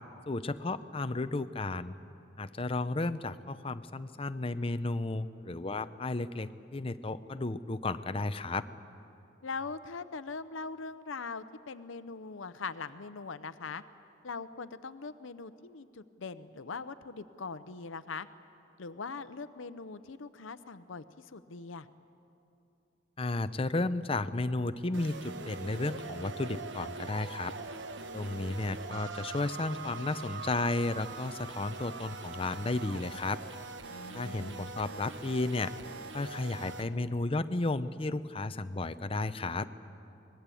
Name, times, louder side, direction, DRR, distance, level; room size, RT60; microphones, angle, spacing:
voice 1, 0.3-2.0 2.4-8.7 23.2-27.5 28.1-33.4 34.1-35.7 36.1-39.7, left 2 dB, 30° left, 12 dB, 0.6 m, -33 dB
voice 2, 9.4-13.8 14.2-18.3 18.8-21.9 33.9-34.7, left 4 dB, 80° left, 13 dB, 0.7 m, -41 dB
sound 1, 24.9-36.8, right 4 dB, 65° right, 1.0 m, -43 dB
23.5 x 20.0 x 8.5 m, 2.7 s
head